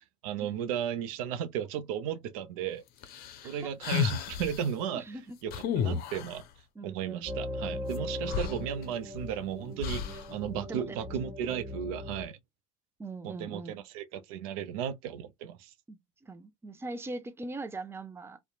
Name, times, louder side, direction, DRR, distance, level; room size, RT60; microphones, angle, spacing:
voice 1, 0.0-2.8 3.4-5.0 5.4-6.4 6.8-12.4 13.2-15.7, right 9 dB, 75° right, 0.5 m, -35 dB
sound 1, 3.0-4.6 5.5-6.4 7.9-8.0 8.3-9.3 9.8-10.3, left 7 dB, 55° left, 0.6 m, -32 dB
voice 2, 3.4-4.0 4.9-5.4 6.8-7.3 10.6-11.1 13.0-13.7 15.9-18.4, right 2 dB, 15° right, 0.5 m, -41 dB
sound 2, 7.3-12.3, left 1 dB, 30° right, 1.1 m, -39 dB
2.8 x 2.1 x 2.3 m
hypercardioid pair, 70°, 18 cm